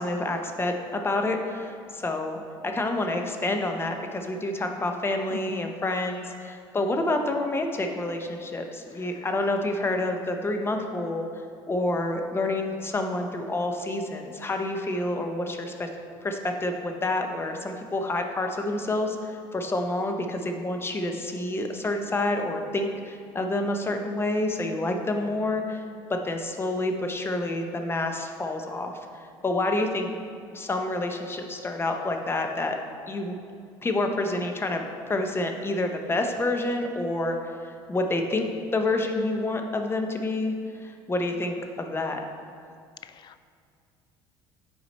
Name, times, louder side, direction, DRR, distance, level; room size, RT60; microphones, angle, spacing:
voice 1, 0.0-11.3 11.7-15.9 16.2-25.8 26.1-30.1 30.5-32.8 33.1-33.3 33.8-38.5 38.7-42.3, left 2 dB, 25° left, 4 dB, 0.8 m, -28 dB
voice 2, 5.3-5.7 43.0-43.4, left 8 dB, 45° left, 13 dB, 0.4 m, -39 dB
8.4 x 4.8 x 4.2 m, 2.3 s
supercardioid pair, 90°, 10 cm